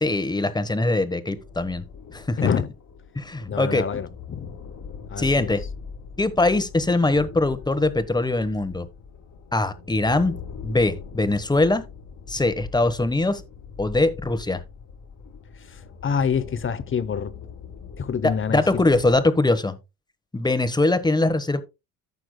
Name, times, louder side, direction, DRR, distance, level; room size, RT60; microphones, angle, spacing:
voice 1, 0.0-1.8 2.1-2.4 3.2-3.8 5.2-5.6 6.2-8.9 9.5-10.3 10.6-11.8 12.3-13.4 13.8-14.6 18.2-19.8 20.3-21.6, left 2 dB, 10° left, 1.1 m, -22 dB
sound 1, 1.3-19.2, left 6 dB, 55° left, 1.8 m, -41 dB
voice 2, 2.4-2.7 3.5-4.5 5.1-5.5 15.6-17.3 18.0-18.9, left 6 dB, 35° left, 0.8 m, -26 dB
14.5 x 6.0 x 2.2 m
cardioid pair, 90°, 37 cm